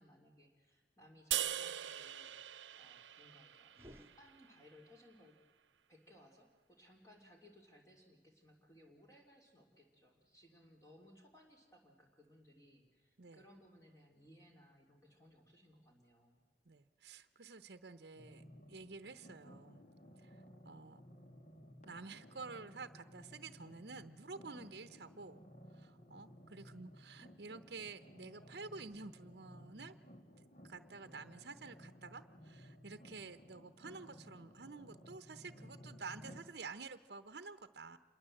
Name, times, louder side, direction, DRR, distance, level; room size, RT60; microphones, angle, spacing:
voice 1, 0.0-3.7 4.0-5.4 5.9-16.4, equal, 20° left, 0 dB, 3.2 m, -63 dB
sound 1, 1.3-4.6, right 11 dB, 90° right, 0.8 m, -41 dB
sound 2, 3.7-5.0, equal, 15° right, 1.9 m, -60 dB
voice 2, 16.7-19.8 20.2-21.0 21.8-25.4 25.7-30.0 30.6-38.0, right 4 dB, 60° right, 10 dB, 0.9 m, -50 dB
sound 3, 18.1-36.4, equal, 40° left, 2.3 m, -57 dB
27.0 x 22.5 x 7.8 m, 1.4 s
head